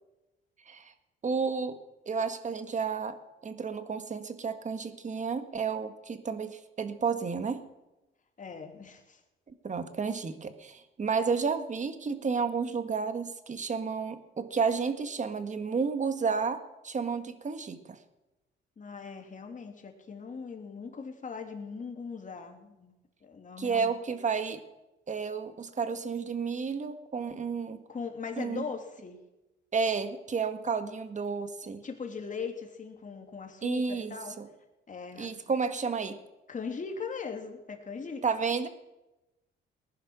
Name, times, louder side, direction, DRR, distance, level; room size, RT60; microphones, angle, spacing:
voice 1, 1.2-1.8 2.0-3.2 3.4-7.6 9.5-18.0 23.6-24.6 25.1-27.8 28.4-28.7 29.7-31.8 33.6-34.5 35.2-36.2 38.2-38.7, right 5 dB, 40° right, 10 dB, 1.7 m, -31 dB
voice 2, 8.4-9.2 18.8-22.9 23.2-24.0 27.9-29.2 31.8-34.4 34.9-35.3 36.5-38.2, left 5 dB, 40° left, 4 dB, 3.0 m, -40 dB
20.0 x 10.5 x 6.2 m, 1.0 s
cardioid pair, 90°, 20 cm